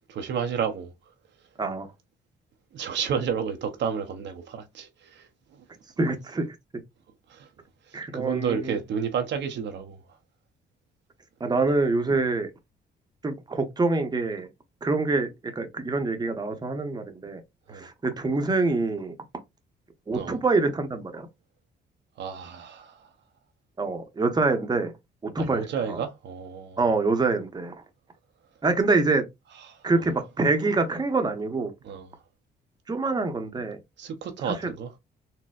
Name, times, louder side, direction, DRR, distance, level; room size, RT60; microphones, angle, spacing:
voice 1, 0.1-0.9 2.7-5.6 7.3-7.5 7.9-10.0 17.7-17.9 20.1-20.4 22.2-23.1 25.4-26.8 29.6-30.1 31.8-32.1 34.0-34.9, right 7 dB, 65° right, 0.6 m, -31 dB
voice 2, 6.0-6.5 7.9-8.8 11.4-12.5 13.2-14.5 14.8-17.4 17.7-19.1 20.1-21.3 23.8-24.9 25.2-26.0 26.8-27.7 28.6-29.3 29.8-31.7 32.9-33.8 34.4-34.7, right 3 dB, 20° right, 0.7 m, -25 dB
4.1 x 2.1 x 2.2 m
cardioid pair, 90°, 20 cm